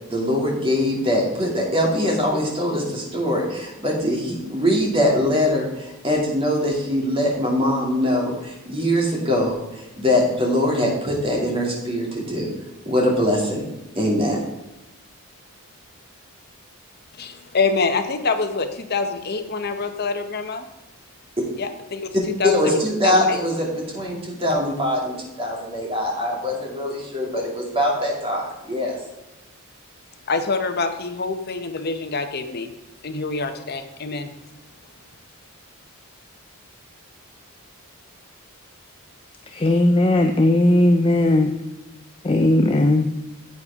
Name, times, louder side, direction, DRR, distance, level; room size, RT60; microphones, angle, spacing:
voice 1, 0.1-12.5 12.8-13.6 13.9-14.4 22.4-29.0, left 1 dB, 25° right, -2 dB, 2.7 m, -22 dB
voice 2, 17.2-20.6 21.6-23.4 30.3-32.7 33.0-34.3, left 4 dB, 45° left, 7 dB, 0.9 m, -26 dB
voice 3, 39.6-41.5 42.2-43.1, left 1 dB, 25° left, 5 dB, 0.5 m, -17 dB
9.6 x 8.6 x 3.6 m, 1.0 s
head